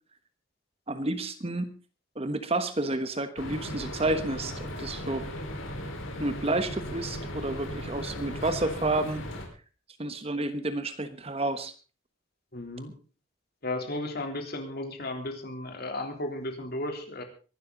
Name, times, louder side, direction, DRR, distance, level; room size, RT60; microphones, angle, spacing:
voice 1, 0.9-1.7 2.1-5.2 6.2-9.2 10.0-11.7, right 2 dB, 30° right, 10 dB, 1.3 m, -30 dB
sound 1, 3.4-9.4, left 1 dB, 70° left, 4.6 m, -37 dB
voice 2, 12.5-12.9 13.6-17.2, left 1 dB, 50° left, 5 dB, 3.5 m, -34 dB
23.5 x 12.0 x 4.0 m, 0.36 s
head